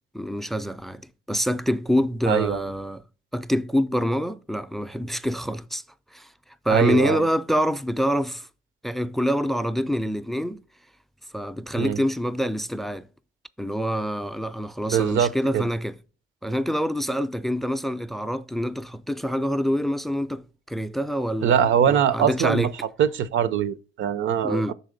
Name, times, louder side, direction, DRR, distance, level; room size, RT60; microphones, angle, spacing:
voice 1, 0.1-3.0 3.3-5.8 6.1-6.3 6.6-8.5 8.8-10.6 11.3-13.1 13.6-16.0 16.4-22.7 24.4-24.7, equal, ahead, 0.4 m, -26 dB
voice 2, 2.3-2.6 6.7-7.3 11.8-12.0 14.9-15.7 21.4-22.7 23.0-24.7, right 9 dB, 75° right, 0.6 m, -22 dB
6.1 x 4.1 x 5.1 m
cardioid pair, 90°, 20 cm